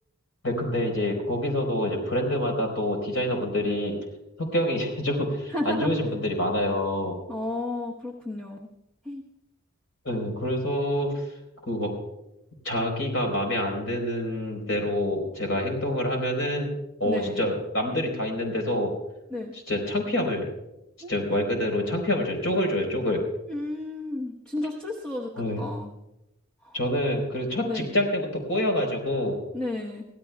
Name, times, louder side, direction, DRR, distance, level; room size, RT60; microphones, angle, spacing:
voice 1, 0.4-4.0 4.4-7.2 10.0-11.3 11.6-11.9 12.6-16.7 17.0-18.9 19.7-20.5 21.1-23.2 25.4-25.6 26.7-29.4, left 1 dB, 65° left, 2 dB, 4.1 m, -27 dB
voice 2, 5.5-5.9 7.3-8.7 9.0-9.2 17.0-17.5 19.3-19.5 21.0-21.1 23.5-25.9 26.6-26.7 27.6-27.9 29.5-30.1, left 2 dB, 5° left, -4 dB, 1.1 m, -32 dB
25.0 x 16.5 x 2.3 m, 0.92 s
head